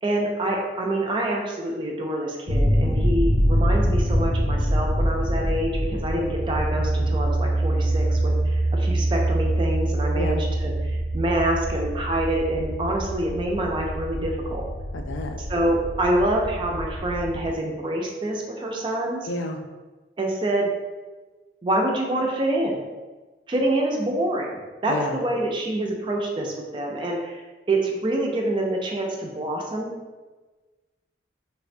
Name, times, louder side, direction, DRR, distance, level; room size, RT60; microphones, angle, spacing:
voice 1, 0.0-14.6 15.5-19.3 20.2-20.7 21.6-22.8 23.5-27.4 27.7-29.9, right 1 dB, 25° right, 0 dB, 0.3 m, -26 dB
sound 1, 2.5-17.5, right 1 dB, 35° left, 0.5 m, -24 dB
voice 2, 14.9-15.4 19.2-19.6 24.9-25.2, left 2 dB, 90° left, 5 dB, 0.3 m, -30 dB
3.2 x 2.1 x 2.5 m, 1.3 s
head